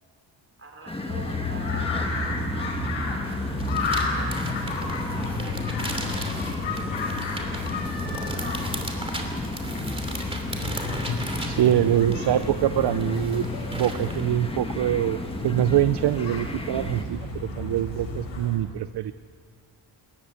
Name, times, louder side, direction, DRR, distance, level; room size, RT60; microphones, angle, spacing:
voice 1, 0.6-4.4 5.3-6.4 6.7-6.8 7.3-9.0 9.5-10.1, right 3 dB, 30° right, 2 dB, 4.9 m, -45 dB
sound 1, 0.9-17.0, left 2 dB, 10° left, 1.5 m, -34 dB
sound 2, 1.1-18.6, left 3 dB, 75° left, 5.7 m, -32 dB
sound 3, 3.2-14.2, right 1 dB, 10° right, 2.8 m, -37 dB
voice 2, 11.5-13.5 13.7-19.1, right 12 dB, 60° right, 13 dB, 0.6 m, -24 dB
28.0 x 14.5 x 8.1 m, 2.2 s
wide cardioid pair, 130°, 45 cm